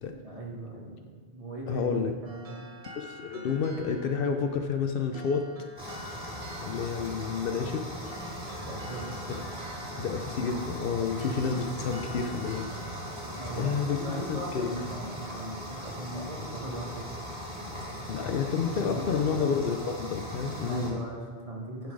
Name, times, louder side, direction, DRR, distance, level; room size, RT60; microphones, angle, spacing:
voice 1, 0.1-1.9 2.2-2.7 8.6-9.2 13.4-17.1 18.7-19.5 20.7-21.9, right 1 dB, 35° right, -3 dB, 1.5 m, -39 dB
voice 2, 1.7-2.1 3.0-5.5 6.6-7.8 9.3-9.4 10.0-12.7 13.5-14.9 18.1-21.0, left 6 dB, 65° left, 6 dB, 0.8 m, -30 dB
sound 1, 2.3-15.5, right 1 dB, 90° right, 1.3 m, -48 dB
sound 2, 5.8-20.9, equal, 5° right, 2.1 m, -39 dB
10.0 x 4.1 x 4.7 m, 1.4 s
omnidirectional pair, 1.0 m